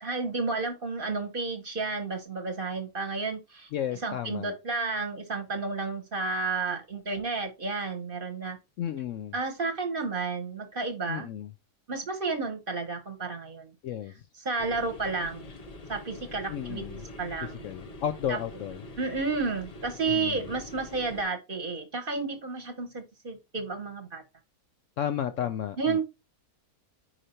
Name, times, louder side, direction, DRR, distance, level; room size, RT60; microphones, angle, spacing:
voice 1, 0.0-8.6 9.3-11.3 11.9-13.7 14.4-15.5 15.9-17.6 18.3-18.4 19.0-24.2 25.8-26.0, right 4 dB, 40° right, 1.1 m, -32 dB
voice 2, 3.7-4.5 8.8-9.3 11.1-11.5 13.8-14.1 16.5-17.0 17.4-18.8 20.1-20.5 25.0-26.0, left 10 dB, 70° left, 0.8 m, -33 dB
sound 1, 14.6-21.2, left 1 dB, 35° left, 0.6 m, -45 dB
4.9 x 4.4 x 4.3 m
omnidirectional pair, 1.6 m